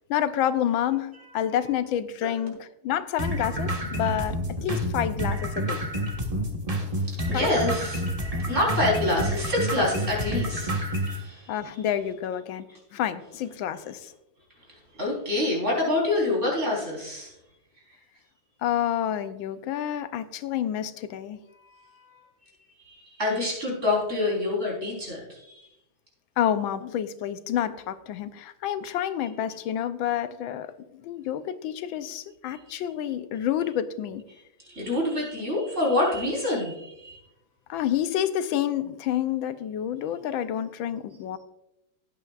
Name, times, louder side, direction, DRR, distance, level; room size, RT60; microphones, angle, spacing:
voice 1, 0.1-5.8 7.3-7.6 11.5-14.1 18.6-21.4 26.4-34.2 37.7-41.4, left 10 dB, 85° left, 12 dB, 1.4 m, -29 dB
sound 1, 3.2-11.2, equal, 20° right, 1.4 m, -29 dB
voice 2, 6.9-8.0 8.3-11.6 14.7-17.3 21.5-22.2 22.8-25.7 34.3-37.2, left 2 dB, 35° right, -3 dB, 4.6 m, -27 dB
16.5 x 9.3 x 2.4 m, 0.86 s
omnidirectional pair, 2.1 m